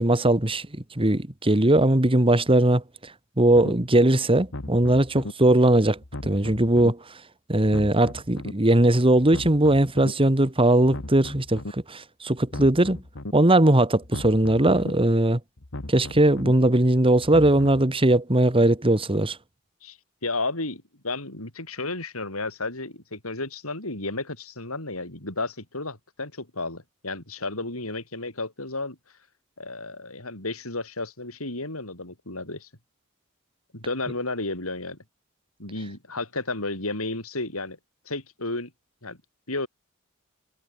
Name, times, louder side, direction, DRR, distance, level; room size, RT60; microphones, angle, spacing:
voice 1, 0.0-2.8 3.4-7.0 7.5-13.0 13.3-15.4 15.9-19.4, right 1 dB, 25° right, 1.8 m, -20 dB
sound 1, 3.5-3.7 4.4-5.3 6.0-6.9 7.6-8.5 9.2-10.1 10.8-11.7 12.4-13.3 14.0-14.9 15.6-16.5 17.2-17.9, left 2 dB, 65° left, 1.8 m, -37 dB
voice 2, 19.8-29.0 29.6-32.7 33.7-35.0 35.6-37.8 38.1-38.7 39.0-39.2 39.5-39.7, left 2 dB, 80° left, 7.5 m, -32 dB
head